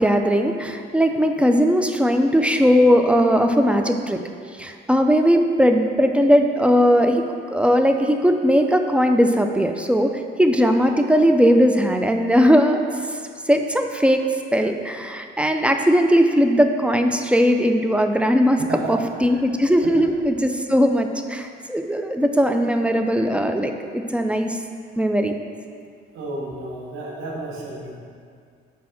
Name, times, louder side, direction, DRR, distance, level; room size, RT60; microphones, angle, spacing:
voice 1, 0.0-4.2 4.6-7.2 7.5-10.1 10.4-12.8 13.5-14.2 14.5-18.6 18.9-24.6 25.0-25.3, equal, 5° right, 5 dB, 0.4 m, -18 dB
voice 2, 18.6-18.9 19.3-19.4 19.8-19.9 26.1-28.0, right 2 dB, 90° right, -3 dB, 1.3 m, -32 dB
4.7 x 4.1 x 5.8 m, 2.1 s
cardioid pair, 90°, 20 cm